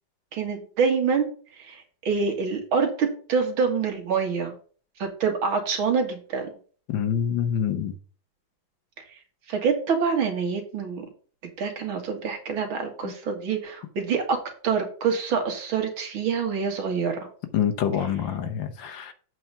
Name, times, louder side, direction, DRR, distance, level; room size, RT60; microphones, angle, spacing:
voice 1, 0.3-1.3 1.6-4.5 5.0-6.5 9.5-11.1 11.6-17.3, right 5 dB, 85° right, 4 dB, 2.6 m, -26 dB
voice 2, 6.9-7.9 13.0-13.1 17.5-19.1, left 8 dB, 70° left, 7 dB, 1.7 m, -26 dB
7.8 x 4.9 x 5.6 m, 0.42 s
omnidirectional pair, 2.2 m